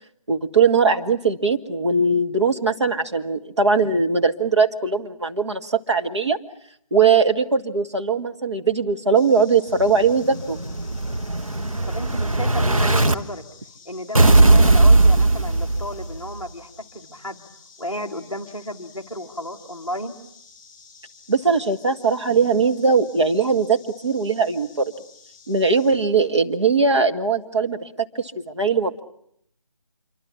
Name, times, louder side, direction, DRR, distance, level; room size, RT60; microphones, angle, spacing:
voice 1, 0.3-6.4 6.9-10.6 21.3-24.9 25.5-29.0, right 4 dB, 55° right, 5 dB, 1.8 m, -20 dB
sound 1, 9.1-25.9, left 5 dB, 20° left, 7.4 m, -50 dB
Explosion, 9.8-13.1 14.1-16.2, right 2 dB, 80° right, 1.6 m, -17 dB
voice 2, 11.9-13.4 13.8-17.5 17.8-20.1, equal, ahead, -10 dB, 1.8 m, -33 dB
26.0 x 24.5 x 7.2 m, 0.70 s
figure-of-eight pair, 155°, 17 cm